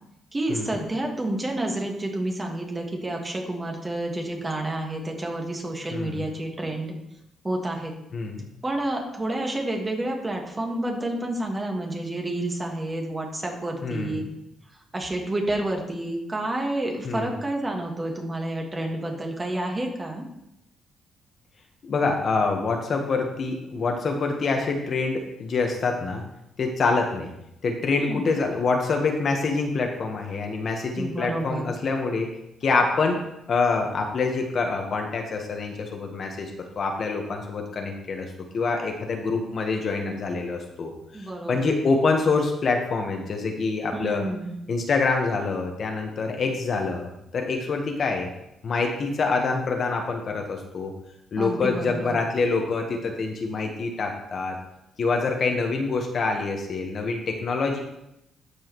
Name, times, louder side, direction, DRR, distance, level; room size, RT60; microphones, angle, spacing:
voice 1, 0.3-6.9 7.4-7.9 8.6-14.3 14.9-20.2 28.0-28.3 31.0-31.7 41.1-41.7 43.9-44.5 51.4-52.2, right 1 dB, 20° right, 1 dB, 1.7 m, -29 dB
voice 2, 5.9-6.3 8.1-8.5 13.8-14.3 17.0-17.3 21.8-26.2 26.6-27.3 27.6-32.3 32.6-33.2 33.5-36.5 36.8-40.9 41.2-44.2 44.7-48.3 48.6-50.9 51.3-54.6 55.0-57.8, left 4 dB, 50° left, 3 dB, 1.2 m, -26 dB
13.0 x 4.8 x 3.1 m, 0.83 s
cardioid pair, 90°, 0 cm